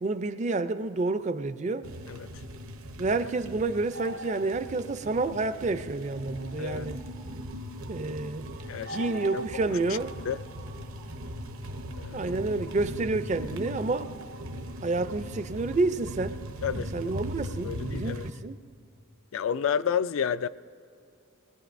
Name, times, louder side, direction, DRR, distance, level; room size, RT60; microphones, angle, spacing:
voice 1, 0.0-1.9 3.0-7.0 7.9-8.4 8.9-10.2 12.1-14.1 14.8-16.4 16.9-18.6, right 3 dB, 35° right, 0.4 m, -29 dB
sound 1, 1.8-18.3, equal, 80° right, 0.9 m, -39 dB
voice 2, 6.6-6.9 8.7-9.0 9.3-9.4 9.9-10.4 12.0-12.2 16.6-16.9 17.4-18.3 19.3-20.5, left 8 dB, 70° left, 0.3 m, -31 dB
21.0 x 20.5 x 2.6 m
head